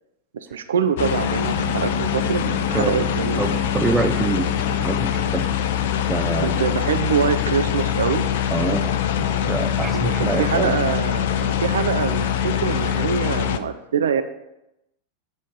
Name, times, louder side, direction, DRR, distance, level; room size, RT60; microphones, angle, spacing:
voice 1, 0.3-3.4 6.4-8.2 9.9-14.2, right 7 dB, 65° right, 9 dB, 0.4 m, -24 dB
sound 1, 1.0-13.6, left 9 dB, 55° left, 0.4 m, -23 dB
voice 2, 2.7-3.1 3.4-5.5 6.1-6.6 8.5-8.9 9.2-10.7, right 3 dB, 15° right, 6 dB, 0.6 m, -25 dB
8.2 x 3.1 x 5.3 m, 0.86 s
figure-of-eight pair, 90°, 0 cm